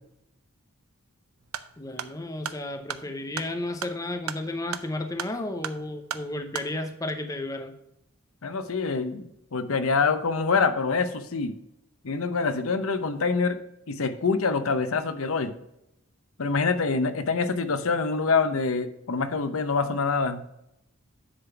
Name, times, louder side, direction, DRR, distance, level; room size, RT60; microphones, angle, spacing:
sound 1, 1.4-6.7, right 8 dB, 85° right, 0.6 m, -38 dB
voice 1, 1.8-7.7, left 2 dB, 15° left, 6 dB, 0.7 m, -33 dB
voice 2, 8.4-11.5 12.0-13.6 13.9-15.5 16.4-20.4, left 4 dB, 80° left, 11 dB, 0.7 m, -25 dB
10.0 x 3.9 x 5.7 m, 0.81 s
head